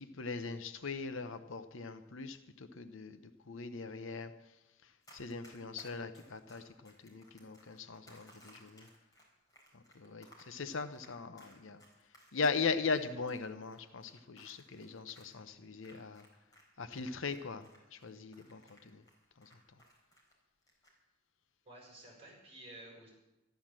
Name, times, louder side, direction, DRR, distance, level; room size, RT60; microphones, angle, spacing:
voice 1, 0.0-4.3 4.8-8.9 9.7-11.8 12.3-16.3 16.8-19.0 19.4-19.5, left 4 dB, 65° left, 10 dB, 0.8 m, -40 dB
Run, 5.0-16.6 16.9-20.3 20.6-20.9, equal, 20° left, 4.2 m, -61 dB
voice 2, 21.6-23.1, right 1 dB, 30° right, -2 dB, 6.7 m, -52 dB
13.0 x 12.5 x 7.5 m, 0.97 s
head